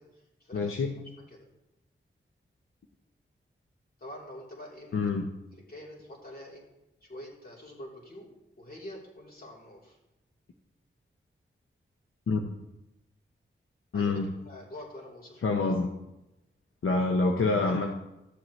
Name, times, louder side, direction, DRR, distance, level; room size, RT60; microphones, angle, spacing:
voice 1, 0.0-0.8 1.2-1.5 4.0-5.2 5.7-6.6 7.0-8.3 8.6-10.0 13.9-15.7, left 1 dB, 45° left, -3 dB, 3.3 m, -46 dB
voice 2, 0.5-1.0 4.9-5.3 12.3-12.5 13.9-14.3 15.4-15.9 16.8-17.9, left 3 dB, 80° left, 3 dB, 0.8 m, -26 dB
13.0 x 7.6 x 3.1 m, 0.93 s
cardioid pair, 50°, 21 cm